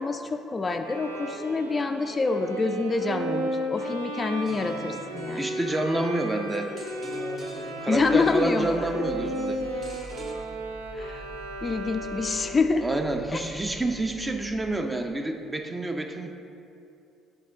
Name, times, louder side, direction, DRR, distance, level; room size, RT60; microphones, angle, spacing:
voice 1, 0.0-5.4 7.9-9.0 10.9-11.3 11.6-12.9 13.3-13.4, left 3 dB, 30° left, 7 dB, 0.3 m, -26 dB
Bowed string instrument, 0.8-12.7, right 1 dB, 85° right, 0.5 m, -34 dB
sound 1, 4.4-10.3, right 2 dB, 40° right, 1.0 m, -44 dB
voice 2, 5.4-6.7 7.8-9.9 12.8-16.3, right 2 dB, 20° right, 5 dB, 0.6 m, -28 dB
sound 2, 7.9-14.8, right 2 dB, 70° right, 1.4 m, -46 dB
8.6 x 3.7 x 3.7 m, 2.6 s
figure-of-eight pair, 50°, 0 cm